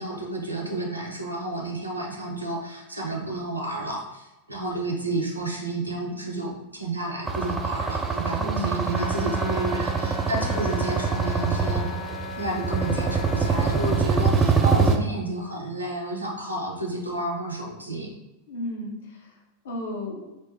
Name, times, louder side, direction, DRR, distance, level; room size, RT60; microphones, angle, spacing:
voice 1, 0.0-11.9 12.3-18.1, right 2 dB, 85° right, -1 dB, 0.7 m, -31 dB
sound 1, 7.3-15.0, right 5 dB, 20° right, 0.4 m, -24 dB
voice 2, 8.4-8.7 10.3-10.6 18.5-19.3 19.6-20.3, left 1 dB, 65° left, -1 dB, 0.8 m, -34 dB
Wind instrument woodwind instrument, 8.9-14.1, left 3 dB, 25° left, 0.6 m, -36 dB
4.1 x 2.1 x 3.3 m, 1.0 s
figure-of-eight pair, 90°, 0 cm